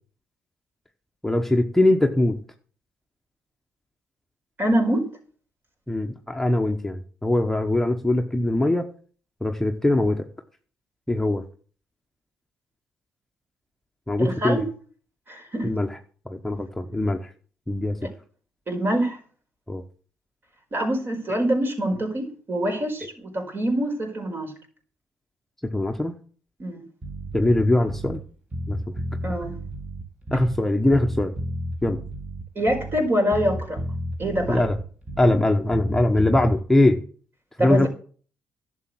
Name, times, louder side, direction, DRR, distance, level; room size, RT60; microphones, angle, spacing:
voice 1, 1.2-2.4 5.9-8.9 9.4-10.2 11.1-11.4 14.1-14.6 15.6-15.9 16.3-17.3 17.7-18.0 19.7-19.8 25.7-26.2 27.3-28.2 28.7-28.8 30.3-31.3 31.8-32.0 34.5-34.8 35.2-37.0 37.6-37.9, left 1 dB, 5° left, 1.1 m, -21 dB
voice 2, 4.6-5.1 14.2-14.6 15.3-15.7 18.7-19.2 20.7-24.5 26.6-26.8 29.2-29.6 32.5-33.8 34.2-34.6 37.6-37.9, equal, 40° right, 4.9 m, -25 dB
Bass guitar, 27.0-28.3 28.5-30.7 30.9-33.1 33.3-35.5 35.7-36.6, equal, 25° right, 2.2 m, -32 dB
11.5 x 7.1 x 7.6 m
cardioid pair, 90°, 5 cm